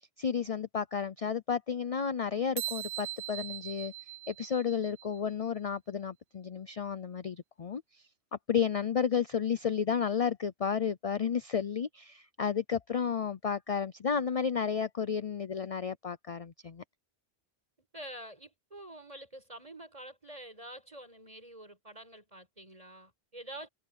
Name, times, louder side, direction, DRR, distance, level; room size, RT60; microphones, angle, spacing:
voice 1, 0.2-3.9 4.3-8.0 8.5-16.8, left 7 dB, 40° left, 0.6 m, -32 dB
sound 1, 2.6-5.2, right 14 dB, 75° right, 0.9 m, -40 dB
voice 2, 17.9-23.7, right 1 dB, 30° right, 6.2 m, -47 dB
omnidirectional pair, 1.1 m